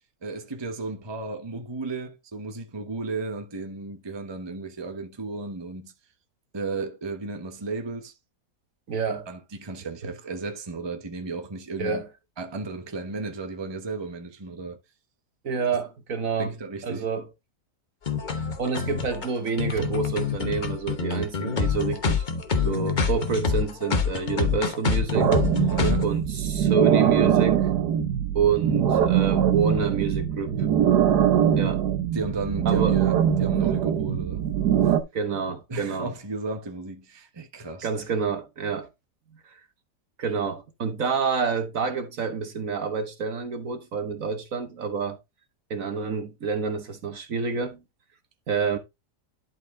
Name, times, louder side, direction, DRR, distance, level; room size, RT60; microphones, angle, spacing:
voice 1, 0.2-5.9 6.5-8.1 9.3-12.0 12.4-14.8 16.4-17.1 25.7-26.1 32.1-34.4 34.8-35.0 35.7-37.9, right 3 dB, 20° right, 1.0 m, -34 dB
voice 2, 8.9-9.3 11.8-12.1 15.4-16.5 16.8-17.3 18.4-22.3 22.6-25.3 26.0-27.7 28.3-30.7 31.0-31.8 32.6-33.0 35.1-36.1 37.8-38.9 39.4-39.6 40.2-45.2 45.7-47.8 48.5-48.8, right 5 dB, 55° right, 1.5 m, -28 dB
sound 1, 18.1-26.0, left 5 dB, 35° left, 1.0 m, -26 dB
sound 2, 25.1-35.0, right 9 dB, 75° right, 1.5 m, -22 dB
11.5 x 4.4 x 3.7 m
omnidirectional pair, 1.7 m